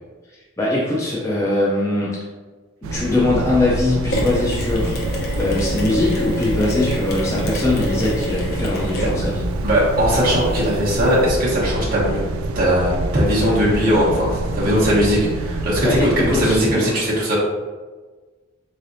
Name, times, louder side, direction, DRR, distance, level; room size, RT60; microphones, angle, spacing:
voice 1, 0.6-2.2 2.9-5.0 5.4-9.4 15.8-16.9, left 2 dB, 15° left, -6 dB, 0.4 m, -21 dB
sound 1, 2.8-16.6, right 2 dB, 90° right, 0.3 m, -26 dB
Mechanisms, 4.1-11.2, equal, 50° left, 0.7 m, -28 dB
voice 2, 9.6-12.2 12.5-17.4, equal, 45° right, -7 dB, 1.1 m, -19 dB
3.7 x 3.3 x 2.6 m, 1.4 s
head